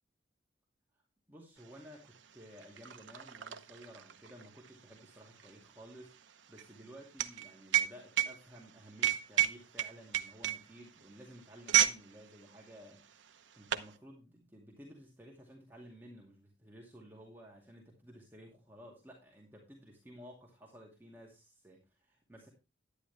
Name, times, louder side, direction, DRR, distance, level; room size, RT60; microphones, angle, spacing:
voice 1, 1.3-6.1 6.5-22.5, equal, 10° right, -2 dB, 2.3 m, -54 dB
sound 1, 1.7-1.8 2.1-12.0 12.3-12.6 13.3-13.9, right 12 dB, 80° right, 0.8 m, -32 dB
10.5 x 10.0 x 3.4 m, 0.26 s
head